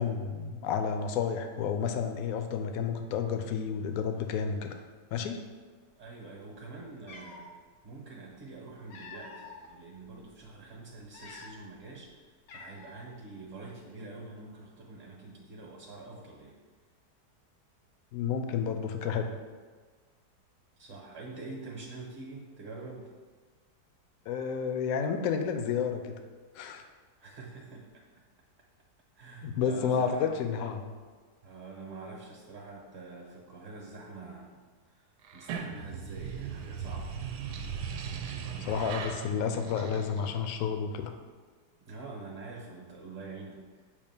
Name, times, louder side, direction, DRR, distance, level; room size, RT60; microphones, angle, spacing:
voice 1, 0.0-4.8 5.1-5.4 18.1-19.3 24.3-26.2 26.5-26.8 29.4-30.9 38.6-41.1, left 6 dB, 70° left, 6 dB, 0.9 m, -31 dB
voice 2, 6.0-7.5 7.8-16.6 20.8-23.1 27.2-28.0 29.1-30.4 31.4-34.6 34.9-37.1 41.8-43.6, right 3 dB, 45° right, -2 dB, 1.0 m, -46 dB
Cat, 7.0-7.5 8.5-9.7 10.2-10.4 11.0-11.8 12.0-12.1 12.5-13.1, left 3 dB, 90° left, 1.4 m, -48 dB
sound 1, 35.2-40.6, right 6 dB, 75° right, 1.1 m, -38 dB
7.2 x 2.4 x 5.3 m, 1.5 s
omnidirectional pair, 1.8 m